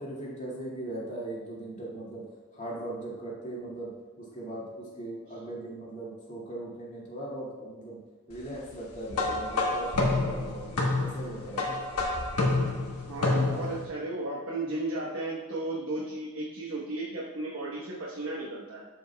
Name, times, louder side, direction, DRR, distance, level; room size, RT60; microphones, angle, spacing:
voice 1, 0.0-2.3 2.5-3.9 4.2-8.0 8.3-11.8, right 1 dB, 35° left, -6 dB, 2.2 m, -39 dB
sound 1, 9.1-13.8, left 2 dB, 85° left, 1.2 m, -28 dB
voice 2, 13.1-18.9, right 2 dB, 65° right, -6 dB, 1.1 m, -34 dB
12.5 x 5.2 x 2.3 m, 1.2 s
head